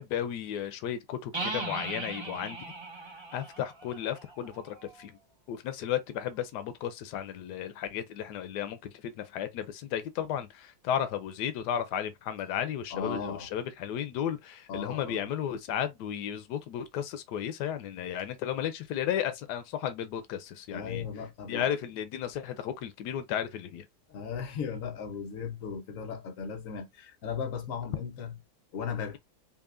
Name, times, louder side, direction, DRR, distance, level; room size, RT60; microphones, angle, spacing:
voice 1, 0.0-2.6 3.3-5.1 5.5-8.8 9.0-21.0 21.5-23.8, left 10 dB, 90° left, 1.2 m, -34 dB
sound 1, 1.3-5.0, right 3 dB, 25° right, 0.6 m, -39 dB
voice 2, 12.9-13.5 14.7-15.3 20.7-21.7 24.1-28.4 28.7-29.2, left 6 dB, 60° left, 1.2 m, -36 dB
5.6 x 2.4 x 2.5 m
omnidirectional pair, 1.7 m